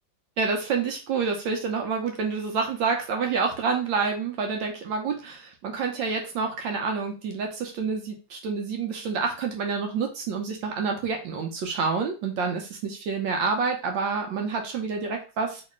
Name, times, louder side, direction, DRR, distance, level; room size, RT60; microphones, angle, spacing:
voice 1, 0.4-15.6, right 5 dB, 75° right, 3 dB, 1.3 m, -28 dB
3.2 x 3.0 x 3.0 m, 0.33 s
omnidirectional pair, 2.2 m